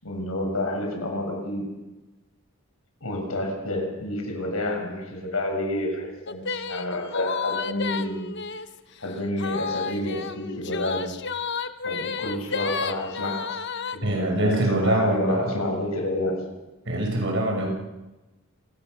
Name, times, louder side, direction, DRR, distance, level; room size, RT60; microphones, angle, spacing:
voice 1, 0.0-1.7 3.0-8.3 8.5-8.6 9.0-11.1 11.8-13.5 13.9-16.4, left 1 dB, 85° left, 3 dB, 6.8 m, -29 dB
sound 1, 6.3-8.8 9.4-14.0, left 5 dB, 55° left, 1.1 m, -31 dB
voice 2, 14.0-15.6 16.8-17.7, right 1 dB, 60° right, 2 dB, 6.3 m, -24 dB
28.0 x 20.5 x 6.8 m, 1.1 s
head